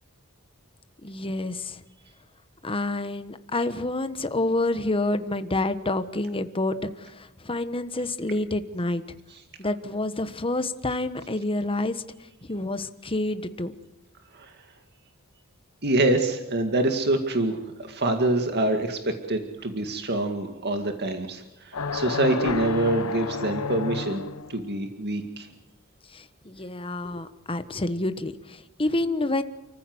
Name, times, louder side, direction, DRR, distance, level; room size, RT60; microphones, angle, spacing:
voice 1, 1.0-1.8 2.6-9.0 9.6-12.0 12.4-13.7 26.1-29.4, left 2 dB, 25° left, 11 dB, 1.2 m, -28 dB
voice 2, 15.8-24.2 24.5-25.5, right 2 dB, 50° right, 5 dB, 2.1 m, -25 dB
sound 1, 21.7-24.6, left 4 dB, 80° left, 1.0 m, -30 dB
29.5 x 15.0 x 7.9 m, 1.0 s
head